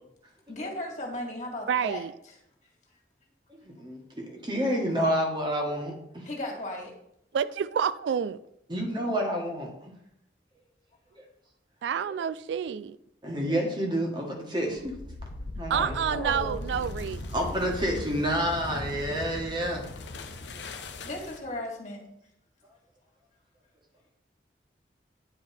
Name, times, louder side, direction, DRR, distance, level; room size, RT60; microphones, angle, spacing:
voice 1, 0.5-2.3 6.2-6.9 15.7-16.7 21.0-22.0, left 1 dB, 40° left, 1.9 m, -36 dB
voice 2, 1.7-2.1 7.3-8.4 11.8-13.0 15.7-17.2, right 7 dB, 85° right, 0.3 m, -28 dB
voice 3, 3.5-6.3 8.7-9.7 11.1-11.2 12.1-12.2 13.2-14.9 15.6-16.0 17.3-19.8, equal, 25° right, 1.5 m, -29 dB
sound 1, 14.7-21.6, left 2 dB, 85° left, 0.8 m, -38 dB
9.4 x 4.7 x 4.3 m
head